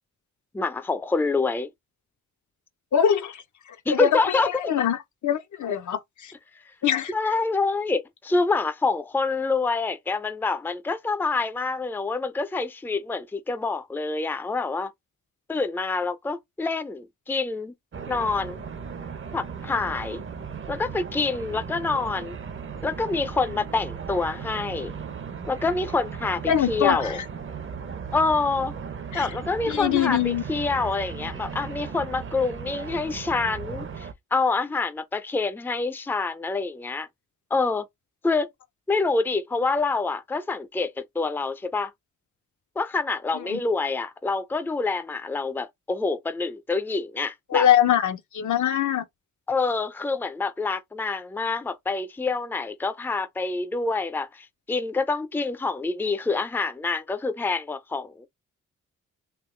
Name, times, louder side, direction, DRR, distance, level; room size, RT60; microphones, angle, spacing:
voice 1, 0.5-1.7 3.9-4.5 7.1-14.9 15.5-17.7 18.1-18.6 19.3-20.2 20.7-22.4 22.8-24.9 25.5-27.2 28.1-28.7 29.1-37.1 37.5-37.8 38.2-38.5 38.9-41.9 42.8-47.7 49.5-58.3, left 3 dB, 5° left, 0.5 m, -26 dB
voice 2, 2.9-3.4 3.9-4.4 4.7-6.3 6.8-7.1 26.5-27.2 29.1-29.3 29.7-30.4 43.3-43.6 47.5-49.0, left 10 dB, 65° left, 0.8 m, -23 dB
sound 1, 17.9-34.1, right 6 dB, 40° right, 0.7 m, -37 dB
3.7 x 2.9 x 3.1 m
cardioid pair, 85°, 32 cm